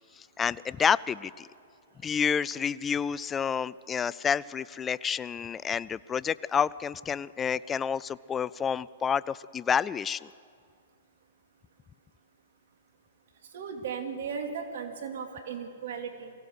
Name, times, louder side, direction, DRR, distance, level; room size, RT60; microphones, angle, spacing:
voice 1, 0.4-1.5 2.0-10.3, left 7 dB, 20° left, 20 dB, 0.4 m, -29 dB
voice 2, 13.5-16.3, right 6 dB, 65° right, 4 dB, 2.5 m, -36 dB
23.0 x 16.0 x 8.0 m, 2.3 s
hypercardioid pair, 120°, 0 cm